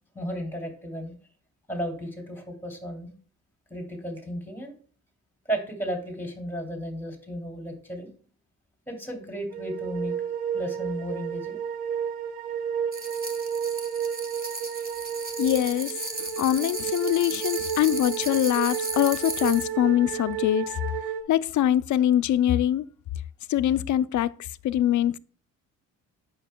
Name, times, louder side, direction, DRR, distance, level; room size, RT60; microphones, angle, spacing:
voice 1, 0.1-1.1 1.7-3.1 3.7-4.7 5.5-8.1 8.9-10.1 10.5-11.6, equal, 5° left, 2.7 m, -34 dB
sound 1, 9.5-21.2, right 8 dB, 90° right, 1.0 m, -32 dB
sound 2, 12.9-19.7, right 2 dB, 25° right, 1.7 m, -36 dB
voice 2, 15.4-15.9 16.2-20.8 21.3-22.9 23.5-24.3 24.6-25.2, left 12 dB, 55° left, 0.4 m, -23 dB
8.9 x 6.4 x 2.2 m
cardioid pair, 75°, 35 cm